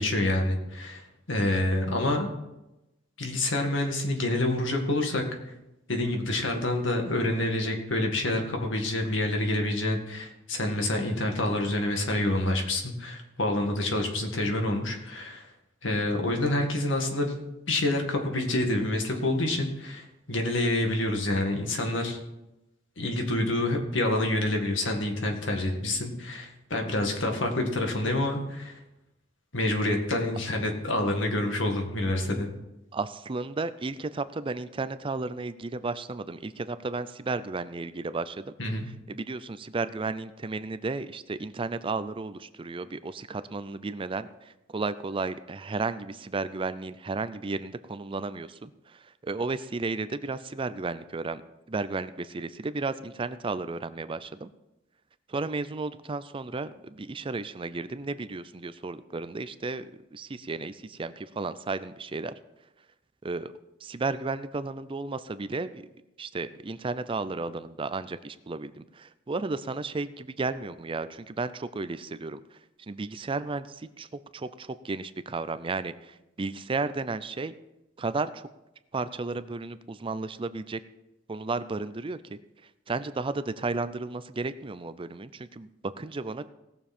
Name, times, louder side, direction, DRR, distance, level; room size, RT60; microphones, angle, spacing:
voice 1, 0.0-2.3 3.2-5.2 5.9-15.5 15.8-17.3 17.7-22.2 23.0-28.8 29.5-32.5 38.6-38.9, left 1 dB, 80° left, 3 dB, 2.0 m, -27 dB
voice 2, 32.9-38.5 39.1-51.4 51.7-54.5 55.3-62.3 63.2-63.5 63.8-65.9 66.2-77.5 78.0-78.5 78.9-80.8 81.3-82.4 82.9-86.5, right 3 dB, 25° right, 13 dB, 0.4 m, -33 dB
18.5 x 7.1 x 4.4 m, 0.94 s
head